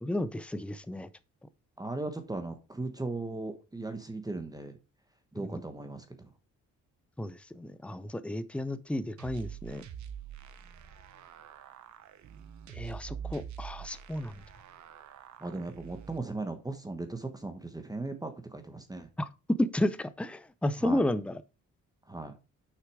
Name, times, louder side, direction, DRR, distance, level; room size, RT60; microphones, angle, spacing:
voice 1, 0.0-1.1 5.4-5.6 7.2-9.8 12.7-14.4 19.2-19.3 19.6-21.4, left 1 dB, 5° left, 0.6 m, -32 dB
voice 2, 1.8-4.7 5.3-6.1 15.4-19.1 20.8-21.0 22.1-22.3, right 2 dB, 10° right, 1.1 m, -37 dB
sound 1, 9.2-16.2, right 8 dB, 70° right, 1.1 m, -45 dB
6.5 x 5.8 x 4.8 m
cardioid pair, 90°, 30 cm